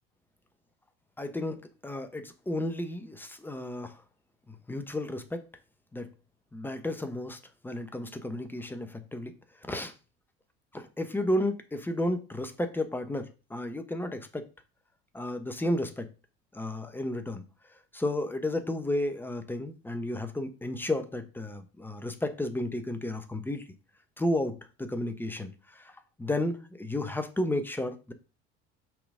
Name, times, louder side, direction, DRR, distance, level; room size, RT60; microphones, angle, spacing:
voice 1, 1.2-4.0 4.5-5.5 5.9-6.1 6.5-9.3 9.6-9.9 10.7-14.5 15.1-16.1 16.5-17.4 17.9-23.6 24.2-25.9 26.2-28.1, left 1 dB, 5° left, 1.0 m, -32 dB
5.9 x 4.0 x 5.0 m
figure-of-eight pair, 65°, 34 cm